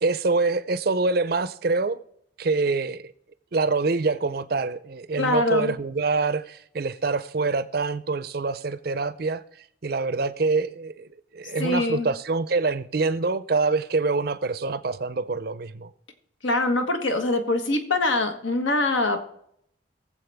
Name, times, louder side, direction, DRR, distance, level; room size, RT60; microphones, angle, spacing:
voice 1, 0.0-2.0 2.4-3.0 3.5-9.4 9.8-11.1 11.3-15.9, right 3 dB, 50° right, 0.5 m, -25 dB
voice 2, 5.2-5.8 11.6-12.1 16.4-19.3, left 2 dB, 80° left, 1.5 m, -24 dB
22.0 x 7.5 x 3.5 m
head